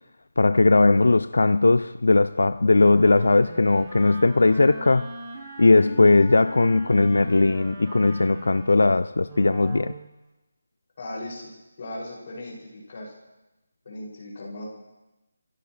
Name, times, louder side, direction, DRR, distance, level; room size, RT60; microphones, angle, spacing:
voice 1, 0.4-5.1 5.6-9.9, left 3 dB, 85° left, 0.5 m, -19 dB
Wind instrument woodwind instrument, 2.7-10.1, right 2 dB, 10° right, 2.2 m, -41 dB
voice 2, 11.0-11.5 11.8-13.1 13.8-14.7, left 1 dB, 35° left, 6.8 m, -37 dB
26.0 x 16.5 x 3.4 m
figure-of-eight pair, 175°, 0 cm